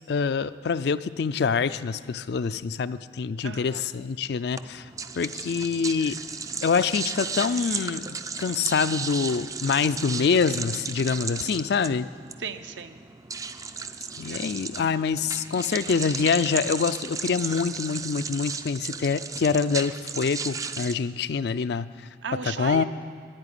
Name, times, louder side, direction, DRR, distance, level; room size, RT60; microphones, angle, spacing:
voice 1, 0.1-4.8 5.2-6.2 6.6-12.1 14.2-21.9 22.6-22.8, left 5 dB, 60° left, 14 dB, 0.4 m, -25 dB
voice 2, 3.4-3.8 12.4-13.0 14.1-14.5 22.2-22.8, right 5 dB, 75° right, 9 dB, 0.7 m, -35 dB
sound 1, 4.5-20.9, right 5 dB, 20° right, 0.3 m, -35 dB
10.5 x 8.8 x 10.0 m, 2.2 s
head